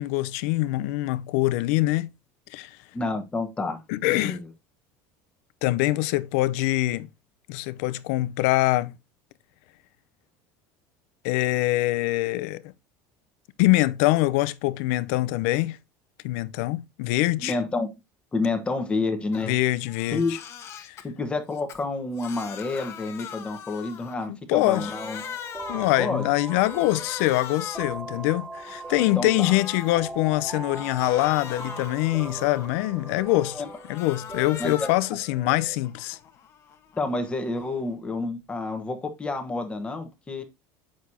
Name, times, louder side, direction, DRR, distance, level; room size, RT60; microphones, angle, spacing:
voice 1, 0.0-2.1 2.5-2.8 3.9-4.4 5.6-7.1 7.5-8.9 11.2-12.6 13.6-15.8 16.2-17.6 19.5-20.4 20.9-21.0 24.3-24.9 25.7-33.6 33.9-36.2, left 18 dB, 80° left, 0.6 m, -24 dB
voice 2, 2.9-3.8 4.1-4.4 17.4-17.9 18.3-19.5 20.1-20.3 21.0-25.2 26.0-26.2 28.9-29.5 33.4-33.7 34.6-34.9 36.9-40.4, left 3 dB, 15° left, 1.2 m, -29 dB
Crying sobbing, 19.3-19.5 19.9-21.0 21.5-24.3 24.5-26.1 26.5-28.0 28.4-30.1 30.5-32.8 33.2-35.1 35.5-37.9, left 8 dB, 40° left, 1.2 m, -41 dB
sound 1, 24.8-35.8, right 3 dB, 10° right, 0.5 m, -40 dB
8.1 x 6.3 x 2.7 m
cardioid pair, 150°, 7 cm